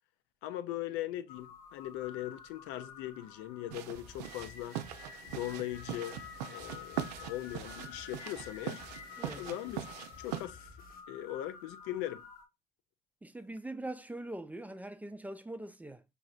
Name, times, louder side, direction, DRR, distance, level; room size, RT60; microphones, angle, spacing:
voice 1, 0.4-4.8 5.2-6.2 6.5-8.8 9.4-10.7 11.1-12.3, left 13 dB, 65° left, 0.4 m, -40 dB
sound 1, 1.3-12.4, left 7 dB, 85° left, 0.8 m, -50 dB
sound 2, 3.7-10.5, right 11 dB, 80° right, 0.4 m, -42 dB
sound 3, 3.9-11.0, left 3 dB, 45° left, 1.0 m, -56 dB
voice 2, 9.2-9.5 13.2-16.0, right 1 dB, 10° right, 0.4 m, -42 dB
4.7 x 2.7 x 2.4 m
hypercardioid pair, 55°, 20 cm